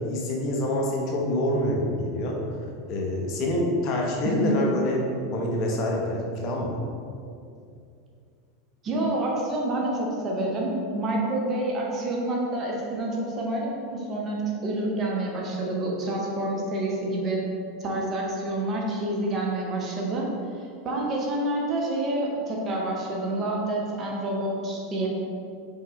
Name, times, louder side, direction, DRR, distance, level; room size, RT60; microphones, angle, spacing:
voice 1, 0.0-2.4 2.9-5.0 5.3-6.8, left 1 dB, 50° left, -1 dB, 0.8 m, -26 dB
voice 2, 4.2-4.6 8.8-17.4 17.8-20.3 20.6-25.1, right 1 dB, 35° right, -2 dB, 1.0 m, -28 dB
4.2 x 3.7 x 3.1 m, 2.4 s
hypercardioid pair, 85°, 0 cm